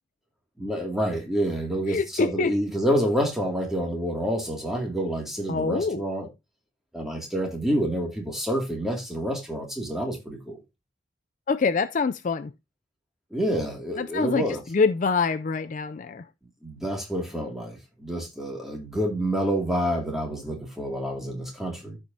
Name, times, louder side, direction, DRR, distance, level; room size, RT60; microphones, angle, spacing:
voice 1, 0.6-6.3 6.9-10.6 13.3-14.6 16.6-22.0, equal, ahead, 2.2 m, -28 dB
voice 2, 1.9-2.5 5.5-6.0 11.5-12.5 14.0-16.3, left 4 dB, 40° left, 0.3 m, -25 dB
14.0 x 5.0 x 2.7 m
head